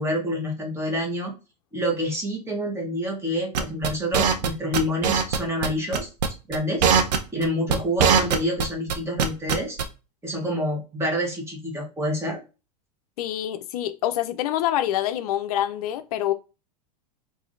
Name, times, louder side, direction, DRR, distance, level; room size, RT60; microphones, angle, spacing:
voice 1, 0.0-1.3 1.7-6.1 6.5-6.9 7.3-9.8 10.2-12.4, equal, 10° right, 1.1 m, -27 dB
sound 1, 3.5-4.5 4.7-5.4 5.6-5.7 5.9-6.3 6.5-8.6 8.9-9.8, right 7 dB, 75° right, 0.7 m, -20 dB
voice 2, 13.2-16.3, left 12 dB, 60° left, 0.4 m, -26 dB
4.8 x 2.6 x 2.5 m
hypercardioid pair, 125°, 21 cm